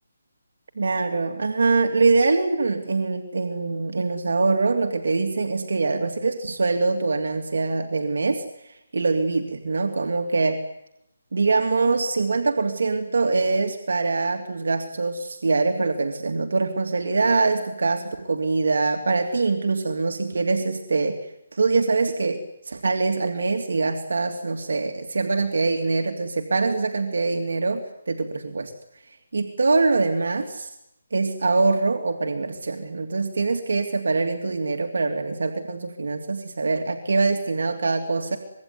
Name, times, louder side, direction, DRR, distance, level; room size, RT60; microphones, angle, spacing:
voice 1, 0.8-10.6 11.3-21.2 21.5-22.4 22.7-28.7 29.3-30.7 31.1-38.4, right 3 dB, 70° right, 4 dB, 3.1 m, -23 dB
26.0 x 22.5 x 9.8 m, 0.82 s
hypercardioid pair, 170°, 0 cm